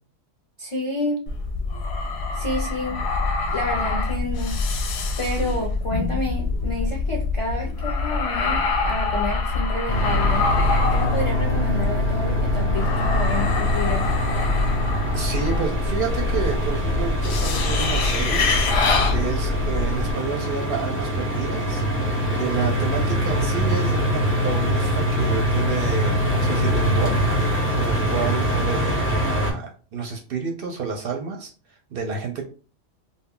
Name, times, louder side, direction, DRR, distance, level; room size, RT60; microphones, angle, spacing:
voice 1, 0.6-1.3 2.3-3.0 3.5-4.9 5.2-10.5 10.9-14.1, left 2 dB, 50° left, -2 dB, 0.3 m, -29 dB
sound 1, 1.3-20.1, left 3 dB, 65° left, 0.7 m, -24 dB
sound 2, 9.9-29.5, equal, 10° left, 0.8 m, -24 dB
voice 2, 15.1-18.5 18.8-21.8 22.3-27.2 27.7-31.5 31.9-32.4, right 5 dB, 60° right, 1 dB, 0.6 m, -30 dB
2.3 x 2.0 x 3.6 m, 0.37 s
omnidirectional pair, 1.3 m